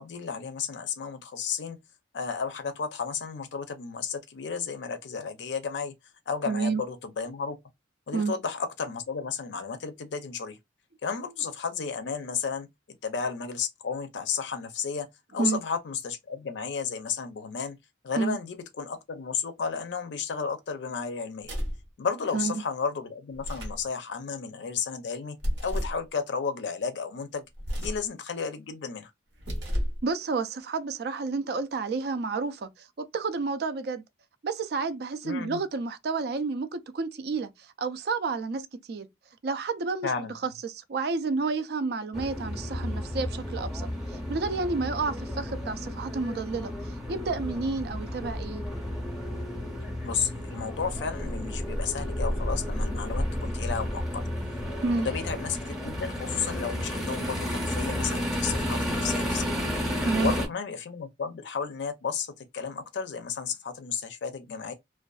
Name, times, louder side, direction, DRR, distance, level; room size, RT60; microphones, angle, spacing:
voice 1, 0.0-1.8 2.1-5.9 6.3-7.6 8.1-10.6 11.0-12.7 13.0-15.1 15.3-17.8 18.0-21.5 22.0-27.5 27.8-29.1 35.2-35.6 40.0-40.3 50.0-54.2 55.0-59.5 59.8-59.9 60.1-64.7, left 6 dB, 75° left, 0.4 m, -33 dB
voice 2, 6.5-6.8 8.1-8.3 15.4-15.6 18.2-18.4 22.3-22.5 30.0-34.0 34.4-39.1 39.4-48.6 54.8-55.1 60.0-60.3, right 4 dB, 60° right, 0.4 m, -30 dB
sound 1, 21.4-21.9 23.3-23.9 25.4-26.0 27.6-28.1 29.3-30.0, equal, 80° right, 0.9 m, -31 dB
sound 2, 42.1-60.5, equal, ahead, 0.7 m, -32 dB
2.5 x 2.2 x 2.3 m
head